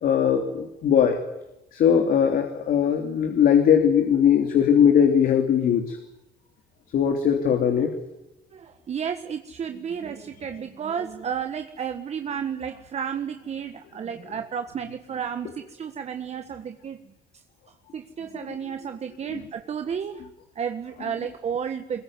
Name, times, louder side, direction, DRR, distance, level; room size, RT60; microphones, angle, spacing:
voice 1, 0.0-1.2 1.7-6.0 6.9-7.9 19.3-19.4, left 8 dB, 60° left, 5 dB, 3.1 m, -20 dB
voice 2, 8.5-17.0 17.9-20.3 20.5-22.0, right 7 dB, 40° right, 7 dB, 1.5 m, -32 dB
22.0 x 22.0 x 9.7 m, 0.93 s
cardioid pair, 110°, 17 cm